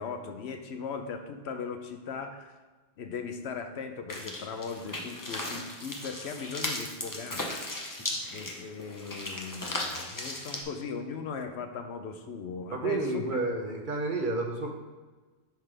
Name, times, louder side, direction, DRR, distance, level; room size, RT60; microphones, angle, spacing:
voice 1, 0.0-2.6 3.0-7.6 8.3-13.4, left 5 dB, 75° left, 6 dB, 0.9 m, -38 dB
sound 1, 4.1-10.6, left 1 dB, 20° left, 0.7 m, -36 dB
voice 2, 12.7-14.7, right 3 dB, 50° right, 2 dB, 0.9 m, -30 dB
10.0 x 3.8 x 3.3 m, 1.3 s
omnidirectional pair, 1.1 m